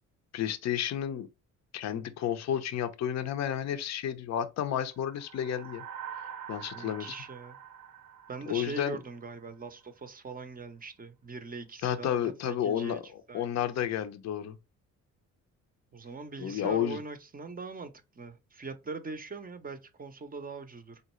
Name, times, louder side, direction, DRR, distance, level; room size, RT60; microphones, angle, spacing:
voice 1, 0.3-1.3 1.7-5.8 6.5-7.1 8.5-9.0 11.8-13.0 13.3-14.6 16.4-17.0, left 10 dB, 50° left, 0.5 m, -31 dB
sound 1, 5.0-9.5, right 8 dB, 70° right, 0.6 m, -45 dB
voice 2, 6.7-7.6 8.3-13.0 13.3-13.6 15.9-21.0, right 4 dB, 25° right, 0.6 m, -41 dB
3.8 x 2.1 x 3.0 m
supercardioid pair, 60°, 36 cm